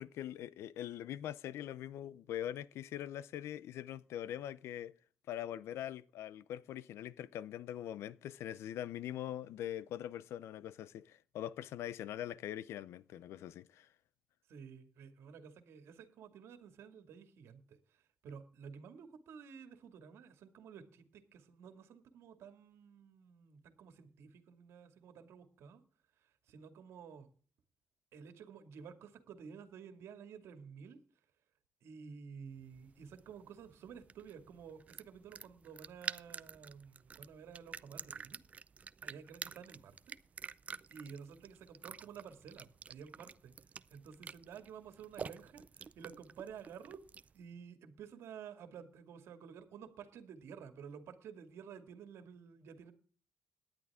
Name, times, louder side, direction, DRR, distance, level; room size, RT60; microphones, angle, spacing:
voice 1, 0.0-4.9 5.3-13.9, left 11 dB, 85° left, 0.6 m, -43 dB
voice 2, 14.5-25.8 26.2-27.3 28.1-31.0 31.8-38.4 39.0-40.1 40.9-43.5 43.9-47.0 47.3-52.9, right 7 dB, 75° right, 2.2 m, -52 dB
sound 1, 32.6-47.4, right 5 dB, 30° right, 0.5 m, -49 dB
18.0 x 10.5 x 3.6 m
cardioid pair, 130°, 4 cm